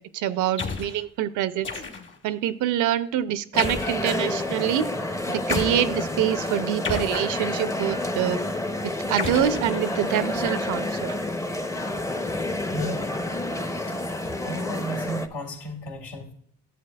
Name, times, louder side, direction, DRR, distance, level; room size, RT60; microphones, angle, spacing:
voice 1, 0.0-1.7 2.2-4.9 5.3-8.4 8.8-11.1, right 11 dB, 85° right, 14 dB, 0.6 m, -26 dB
sound 1, 0.6-1.0 1.6-2.3 3.6-4.1 5.5-5.8 6.8-7.7 9.2-10.2, left 4 dB, 40° left, 1.3 m, -32 dB
sound 2, 3.5-15.3, left 1 dB, 10° left, 0.5 m, -29 dB
voice 2, 12.7-13.3 13.9-14.0 14.2-16.3, equal, 85° left, 1 dB, 2.1 m, -33 dB
11.0 x 7.4 x 2.3 m, 0.62 s
cardioid pair, 90°, 30 cm